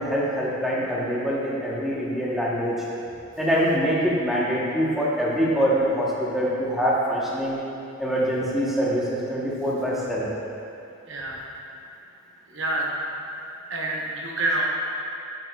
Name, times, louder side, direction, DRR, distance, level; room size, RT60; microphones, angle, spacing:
voice 1, 0.0-2.7 3.4-7.6 8.0-10.3, equal, ahead, -6 dB, 0.9 m, -24 dB
voice 2, 11.1-11.4 12.5-12.9 13.7-14.7, right 2 dB, 65° right, -2 dB, 0.9 m, -27 dB
8.9 x 6.1 x 2.3 m, 2.7 s
head